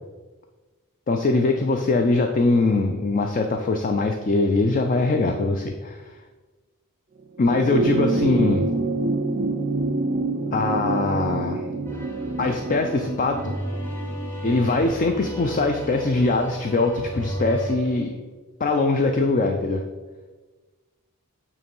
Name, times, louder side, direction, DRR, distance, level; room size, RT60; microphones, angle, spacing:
voice 1, 1.1-6.2 7.4-8.7 10.5-11.6 12.4-13.5 14.4-18.2 18.6-19.8, left 3 dB, 35° left, 5 dB, 0.4 m, -22 dB
sound 1, 7.4-16.1 17.3-17.4, right 3 dB, 35° right, 0.4 m, -27 dB
sound 2, 11.8-17.7, equal, 10° left, 0.9 m, -34 dB
8.4 x 3.1 x 5.3 m, 1.3 s
head